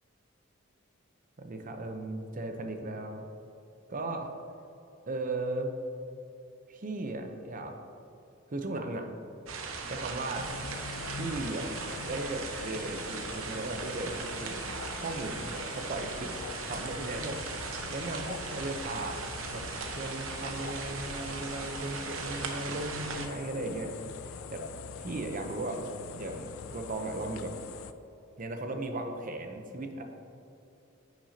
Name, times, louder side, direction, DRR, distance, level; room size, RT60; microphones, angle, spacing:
voice 1, 1.4-3.3 3.9-4.3 5.1-5.7 6.7-7.8 8.5-9.1 9.9-10.5 11.1-14.5 15.0-16.3 16.6-17.6 17.9-23.9 24.5-24.6 25.0-27.5 28.4-30.0, right 2 dB, 40° right, 5 dB, 0.7 m, -36 dB
sound 1, 9.5-23.3, right 4 dB, 85° right, 0.7 m, -38 dB
sound 2, 10.3-27.9, left 6 dB, 90° left, 0.4 m, -44 dB
9.9 x 6.1 x 2.8 m, 2.8 s
head